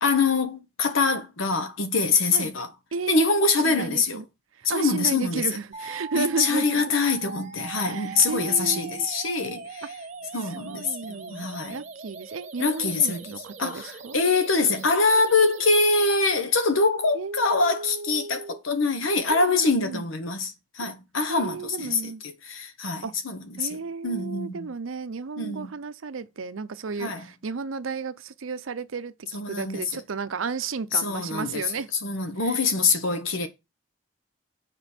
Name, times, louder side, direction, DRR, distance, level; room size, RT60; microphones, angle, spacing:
voice 1, 0.0-2.7 3.1-4.2 4.6-5.4 6.1-9.8 10.3-11.8 12.6-13.2 13.6-23.8 24.0-24.7 25.4-25.7 27.0-27.2 29.3-30.0 30.9-31.6 32.0-33.5, left 3 dB, 80° left, 1.1 m, -24 dB
voice 2, 2.9-3.3 3.6-4.2 4.5-6.9 7.8-9.1 9.8-9.9 10.3-14.2 17.1-18.6 19.3-20.0 21.3-22.2 23.0-23.1 23.6-31.9 32.4-32.6, right 4 dB, 85° right, 0.6 m, -33 dB
sound 1, 5.7-15.7, right 4 dB, 35° right, 0.7 m, -41 dB
6.9 x 5.0 x 4.4 m
head